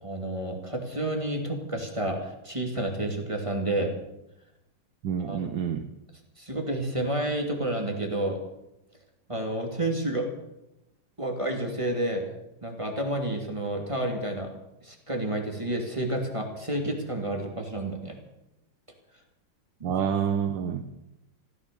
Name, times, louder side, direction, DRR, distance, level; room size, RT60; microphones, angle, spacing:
voice 1, 0.0-3.9 5.2-5.5 6.4-8.4 9.3-10.3 11.2-12.3 12.6-14.6 14.8-18.2 19.8-20.0, right 1 dB, 15° right, 2 dB, 2.6 m, -30 dB
voice 2, 5.0-5.9 19.8-20.8, right 8 dB, 65° right, 7 dB, 1.6 m, -28 dB
15.5 x 13.5 x 6.9 m, 0.89 s
omnidirectional pair, 2.3 m